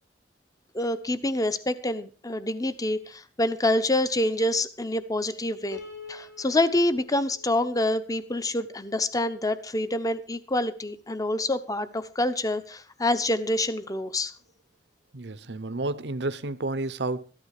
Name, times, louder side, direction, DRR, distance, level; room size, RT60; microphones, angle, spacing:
voice 1, 0.7-5.8 6.1-14.3, left 1 dB, 20° left, 0.9 m, -27 dB
Piano, 5.7-8.9, left 5 dB, 80° left, 4.2 m, -46 dB
voice 2, 15.1-17.2, right 2 dB, 75° right, 0.9 m, -31 dB
14.0 x 12.5 x 4.9 m
head